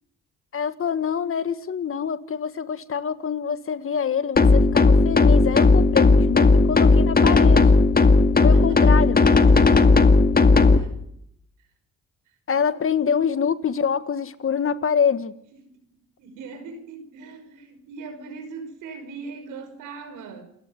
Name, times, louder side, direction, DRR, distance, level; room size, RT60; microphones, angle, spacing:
voice 1, 0.5-7.7 8.4-9.2 12.5-15.3, left 7 dB, 45° left, 1.7 m, -25 dB
sound 1, 4.4-10.8, left 3 dB, 30° left, 2.0 m, -15 dB
voice 2, 8.5-10.0 10.7-10.9 12.7-12.9 16.2-20.4, right 4 dB, 90° right, 5.6 m, -40 dB
28.5 x 14.0 x 9.7 m
cardioid pair, 90°, 30 cm